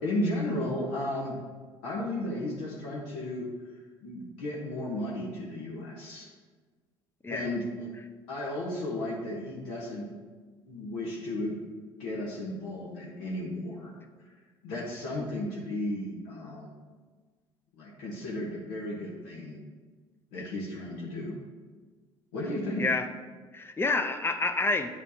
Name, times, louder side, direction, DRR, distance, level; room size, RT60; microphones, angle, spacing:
voice 1, 0.0-1.4 1.8-3.5 4.0-6.3 7.3-7.9 8.3-10.1 10.7-11.6 12.0-13.9 14.6-16.7 17.8-19.6 20.3-21.3 22.3-22.8, left 1 dB, 75° left, -4 dB, 1.1 m, -34 dB
voice 2, 23.5-24.9, left 3 dB, 20° left, 7 dB, 0.6 m, -28 dB
8.8 x 4.3 x 2.8 m, 1.4 s
hypercardioid pair, 65°, 13 cm